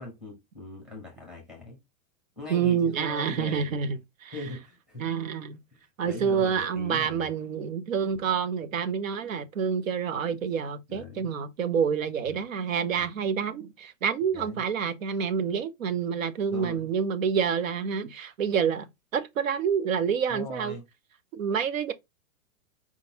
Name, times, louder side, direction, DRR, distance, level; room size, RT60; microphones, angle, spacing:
voice 1, 0.0-1.8 2.4-3.8 4.3-5.1 5.7-7.3 10.9-11.3 13.0-13.1 14.3-14.6 16.5-16.9 20.3-20.8, left 2 dB, ahead, 0.7 m, -41 dB
voice 2, 2.5-4.3 5.0-5.6 6.0-20.7 21.3-21.9, right 7 dB, 75° right, 0.9 m, -28 dB
4.8 x 3.7 x 2.8 m
supercardioid pair, 180°, 40 cm